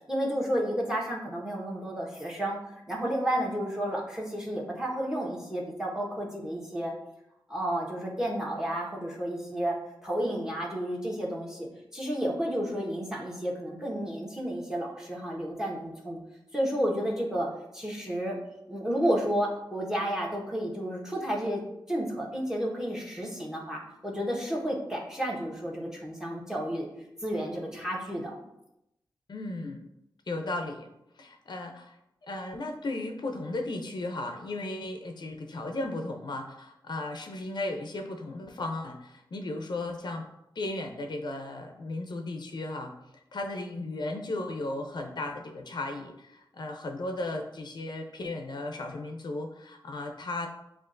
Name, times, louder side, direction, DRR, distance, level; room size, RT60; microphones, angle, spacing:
voice 1, 0.1-2.6 2.9-6.9 7.5-9.8 10.0-11.7 11.9-16.2 16.5-17.5 17.7-18.4 18.7-21.6 21.9-26.9 27.2-28.4, equal, 5° right, -2 dB, 1.2 m, -31 dB
voice 2, 29.3-29.8 30.3-30.9 31.2-32.0 32.3-40.3 40.6-42.9 43.3-50.5, left 2 dB, 60° left, 3 dB, 0.5 m, -35 dB
7.3 x 2.5 x 2.5 m, 0.86 s
wide cardioid pair, 75°, 8 cm